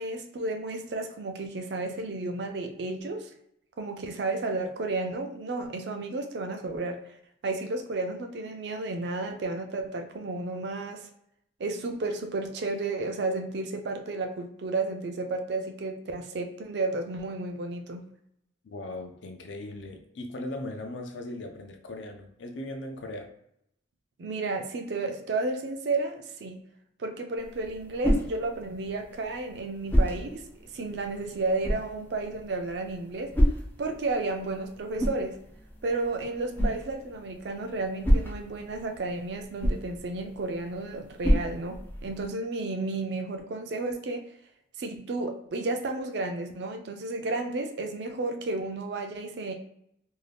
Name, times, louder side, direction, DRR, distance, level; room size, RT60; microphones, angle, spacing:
voice 1, 0.0-3.3 3.8-7.0 7.4-11.1 11.6-18.0 24.2-26.6 27.0-33.3 33.8-35.4 35.8-44.3 44.8-49.6, right 3 dB, 60° right, 5 dB, 0.4 m, -32 dB
voice 2, 18.6-23.3, left 1 dB, 75° left, 4 dB, 0.5 m, -38 dB
sound 1, 27.4-42.3, equal, 10° left, 0.4 m, -30 dB
2.6 x 2.2 x 3.3 m, 0.74 s
head